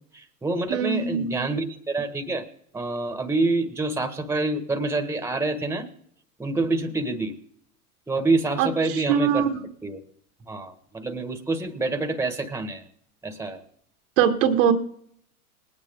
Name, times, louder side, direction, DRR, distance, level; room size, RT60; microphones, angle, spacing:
voice 1, 0.1-2.4 2.7-5.9 6.4-7.3 8.1-9.5 9.8-10.0 10.4-12.9 13.2-13.6, right 2 dB, 5° right, 7 dB, 1.6 m, -27 dB
voice 2, 0.7-1.4 8.6-8.7 9.1-9.6 14.2-14.7, right 8 dB, 55° right, 5 dB, 1.7 m, -21 dB
20.0 x 9.4 x 3.8 m, 0.66 s
hypercardioid pair, 100°, 45 cm